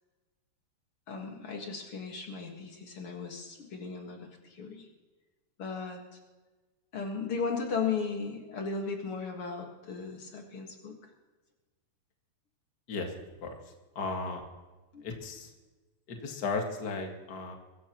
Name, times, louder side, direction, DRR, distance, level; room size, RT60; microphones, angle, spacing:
voice 1, 1.1-4.9 5.6-6.0 6.9-10.9 14.9-15.0, left 5 dB, 55° left, 2 dB, 1.5 m, -36 dB
voice 2, 13.9-14.4 15.0-15.5 16.1-17.5, left 3 dB, 85° left, 2 dB, 0.8 m, -35 dB
23.5 x 15.0 x 3.0 m, 1.2 s
omnidirectional pair, 5.0 m